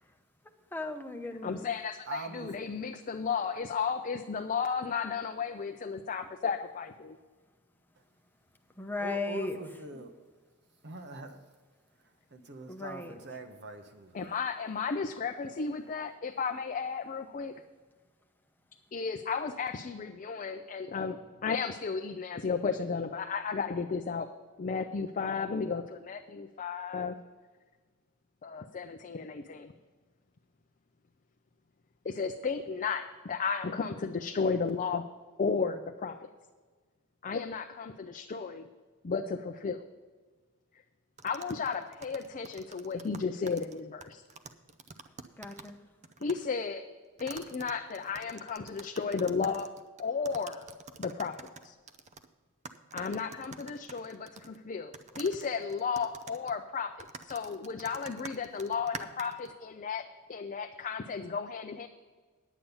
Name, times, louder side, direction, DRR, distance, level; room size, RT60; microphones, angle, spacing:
voice 1, 0.7-1.7 8.8-9.6 9.9-10.0 12.7-13.1 45.4-45.9, left 2 dB, 10° left, 4 dB, 0.8 m, -36 dB
voice 2, 1.4-7.2 14.1-17.5 18.9-24.3 24.6-27.2 28.4-29.7 32.0-35.1 35.4-36.2 37.2-38.7 39.0-39.8 41.2-44.2 46.2-46.9 47.2-49.7 50.0-50.7 51.0-51.8 52.9-61.9, left 5 dB, 35° left, 5 dB, 0.4 m, -34 dB
voice 3, 2.1-2.5 9.0-10.1 10.8-11.4 12.3-14.3, right 3 dB, 50° right, 6 dB, 1.1 m, -43 dB
sound 1, 41.2-45.8 46.0-46.4 47.2-52.3 52.6-54.6 54.9-59.5, right 4 dB, 30° right, 0.6 m, -47 dB
10.0 x 8.6 x 5.5 m, 1.4 s
head